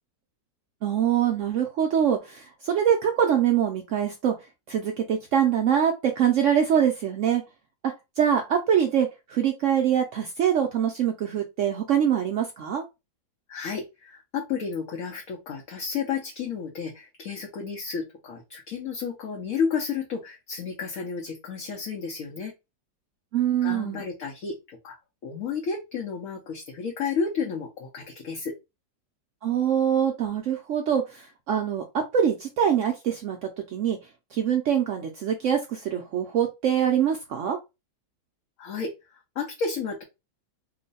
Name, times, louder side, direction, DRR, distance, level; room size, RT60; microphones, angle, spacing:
voice 1, 0.8-4.3 4.7-7.4 7.8-12.8 23.3-24.0 29.4-31.8 32.1-34.0 34.3-37.6, right 9 dB, 70° right, 3 dB, 0.7 m, -24 dB
voice 2, 13.5-22.5 23.6-25.0 25.2-28.5 38.6-40.0, left 5 dB, 65° left, 0 dB, 1.0 m, -32 dB
3.0 x 2.1 x 3.9 m, 0.24 s
omnidirectional pair, 1.7 m